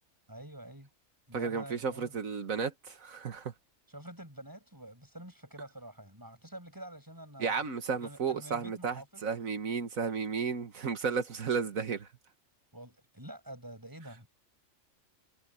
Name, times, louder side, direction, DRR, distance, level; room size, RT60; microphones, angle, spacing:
voice 1, 0.3-0.9 1.3-2.2 3.9-7.6 8.0-9.3 12.7-14.3, right 1 dB, 15° right, 7.1 m, -47 dB
voice 2, 1.3-3.5 7.4-12.1, right 5 dB, 85° right, 1.9 m, -33 dB
omnidirectional pair, 1.4 m